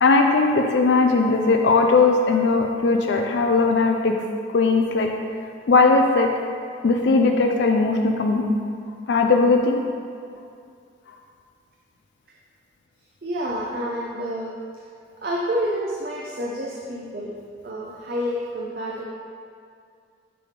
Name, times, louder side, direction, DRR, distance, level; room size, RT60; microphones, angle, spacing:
voice 1, 0.0-4.2 4.5-5.1 5.7-6.3 6.8-8.6 9.1-9.8, left 3 dB, 70° left, 3 dB, 0.4 m, -18 dB
voice 2, 13.2-14.5 15.2-17.3 17.6-19.0, equal, 50° right, -3 dB, 0.6 m, -28 dB
6.8 x 3.4 x 5.1 m, 2.3 s
head